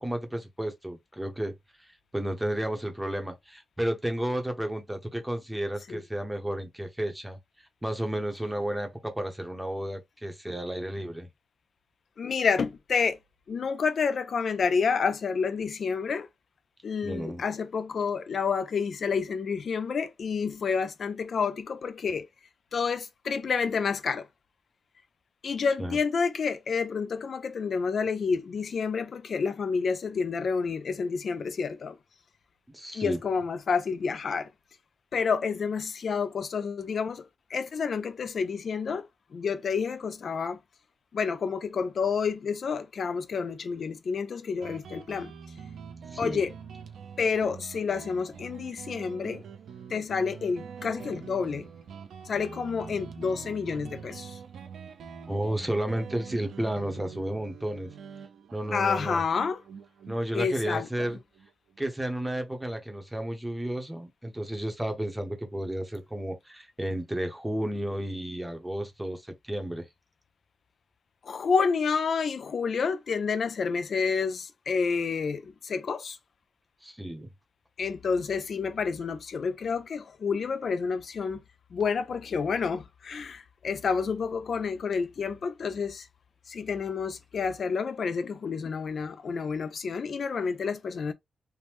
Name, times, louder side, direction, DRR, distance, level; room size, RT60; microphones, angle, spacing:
voice 1, 0.0-1.5 2.1-7.4 7.8-11.3 17.0-17.4 25.8-26.0 32.7-33.2 46.1-46.4 55.3-57.9 58.5-59.2 60.1-61.2 61.8-69.9 76.8-77.3, right 1 dB, 5° right, 0.8 m, -32 dB
voice 2, 12.2-13.2 13.5-16.3 16.8-22.3 22.7-24.3 25.4-32.0 32.9-34.5 35.1-39.1 39.3-40.6 41.1-45.3 46.2-46.5 47.2-49.4 49.9-51.7 52.3-54.4 58.7-59.6 60.3-61.1 71.2-76.2 77.8-81.4 81.7-86.1 86.5-91.1, left 5 dB, 55° left, 0.3 m, -29 dB
Guitar, 44.6-61.8, right 6 dB, 75° right, 0.6 m, -45 dB
3.4 x 2.0 x 2.9 m
wide cardioid pair, 120°, 0 cm